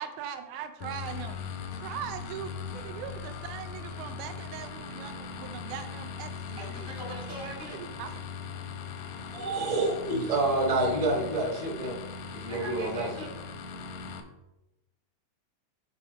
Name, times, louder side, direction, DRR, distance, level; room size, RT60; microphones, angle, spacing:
voice 1, 0.0-1.4 1.7-6.9 7.7-8.1, right 8 dB, 80° right, 7 dB, 1.8 m, -40 dB
sound 1, 0.8-14.2, left 5 dB, 85° left, 2.1 m, -40 dB
voice 2, 6.6-7.9 12.5-13.4, right 1 dB, 20° left, -3 dB, 0.4 m, -41 dB
voice 3, 9.3-11.9 12.4-13.1, right 2 dB, 35° right, -2 dB, 0.5 m, -28 dB
9.5 x 3.7 x 4.2 m, 0.94 s
omnidirectional pair, 3.6 m